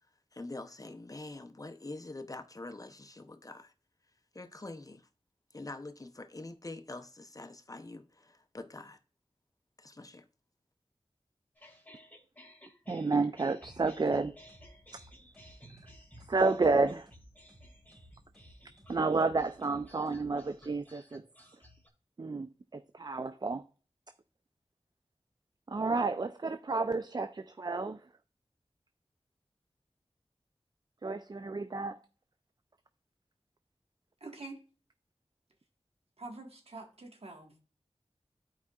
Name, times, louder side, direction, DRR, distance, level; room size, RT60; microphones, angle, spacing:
voice 1, 0.3-3.7 4.3-5.1 5.5-9.0 9.8-10.3, left 2 dB, 35° left, 0.6 m, -45 dB
sound 1, 11.5-21.9, equal, 15° left, 2.0 m, -57 dB
voice 2, 12.9-14.3 14.9-15.0 16.3-17.1 18.9-21.2 22.2-23.6 25.7-28.0 31.0-32.0, right 3 dB, 40° right, 0.4 m, -30 dB
sound 2, 13.6-20.8, equal, ahead, 3.0 m, -58 dB
voice 3, 34.2-34.6 36.2-37.5, right 2 dB, 70° right, 1.4 m, -46 dB
12.0 x 4.8 x 2.3 m
cardioid pair, 40°, 11 cm